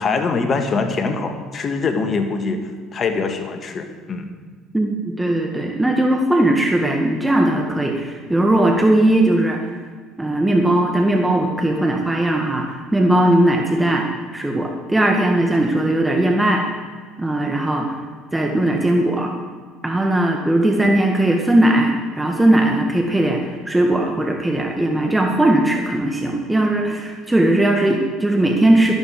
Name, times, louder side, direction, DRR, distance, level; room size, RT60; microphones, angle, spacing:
voice 1, 0.0-4.3, left 4 dB, 40° left, 6 dB, 1.8 m, -23 dB
voice 2, 4.7-9.7 10.2-16.6 17.2-18.0 18.3-19.3 19.8-28.9, right 1 dB, 10° right, 2 dB, 1.7 m, -18 dB
12.5 x 12.0 x 4.8 m, 1.5 s
hypercardioid pair, 75°, 0 cm